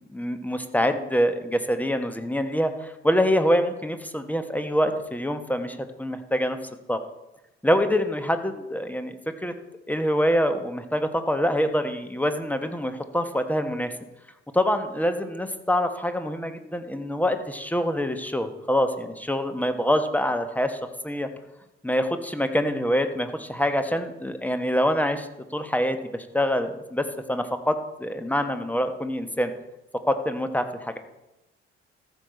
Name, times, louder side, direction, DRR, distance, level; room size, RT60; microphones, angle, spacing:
voice 1, 0.1-6.6 6.9-7.0 7.6-9.5 9.9-13.9 14.5-21.3 21.8-29.5 30.1-31.0, equal, 5° left, 8 dB, 1.1 m, -25 dB
14.0 x 7.3 x 4.3 m, 0.94 s
figure-of-eight pair, 45°, 33 cm